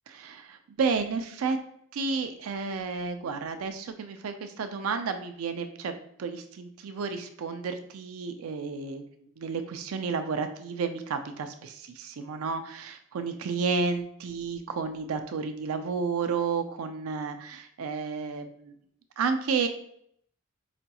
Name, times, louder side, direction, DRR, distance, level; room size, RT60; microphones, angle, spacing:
voice 1, 0.2-1.6 1.9-5.9 6.2-9.0 9.4-18.7 19.2-19.7, right 5 dB, 80° right, 7 dB, 0.4 m, -31 dB
4.9 x 2.3 x 2.8 m, 0.67 s
head